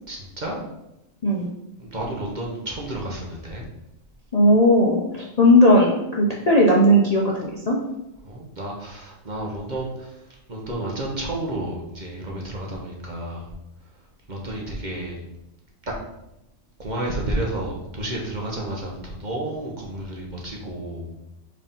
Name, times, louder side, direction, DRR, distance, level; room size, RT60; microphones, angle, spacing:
voice 1, 0.1-0.6 1.8-3.7 8.2-13.5 14.3-15.2 16.8-21.2, right 1 dB, 35° right, -2 dB, 1.1 m, -31 dB
voice 2, 4.3-7.8, equal, 35° left, -3 dB, 0.7 m, -17 dB
4.8 x 3.6 x 5.5 m, 0.89 s
omnidirectional pair, 1.4 m